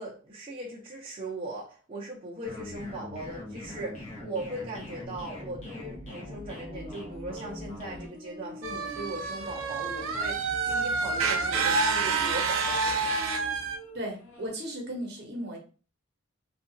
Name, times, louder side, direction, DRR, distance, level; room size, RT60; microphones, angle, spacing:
voice 1, 0.0-13.2 13.6-13.7, right 2 dB, 25° right, -5 dB, 0.6 m, -39 dB
sound 1, 2.4-8.1, left 1 dB, 35° left, 0.9 m, -42 dB
sound 2, 6.7-14.5, equal, 65° left, 0.9 m, -47 dB
sound 3, 8.6-13.8, right 4 dB, 85° right, 0.5 m, -28 dB
voice 2, 13.9-15.6, equal, 55° right, 0 dB, 0.8 m, -36 dB
2.7 x 2.3 x 2.6 m, 0.37 s
head